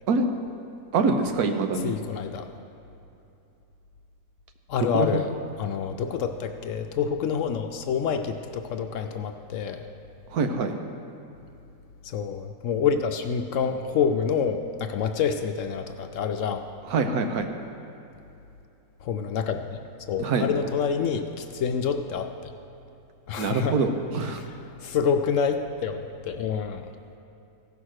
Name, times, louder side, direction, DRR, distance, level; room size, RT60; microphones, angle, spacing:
voice 1, 0.9-1.9 4.9-5.2 10.3-10.7 16.8-17.5 20.2-20.5 23.4-24.4, right 4 dB, 80° right, 6 dB, 1.3 m, -25 dB
voice 2, 1.8-2.5 4.7-5.3 5.6-9.8 12.0-16.6 19.0-19.8 20.1-22.5 23.3-23.8 24.8-26.9, left 6 dB, 65° left, 6 dB, 0.8 m, -27 dB
15.5 x 5.9 x 6.4 m, 2.7 s
omnidirectional pair, 1.6 m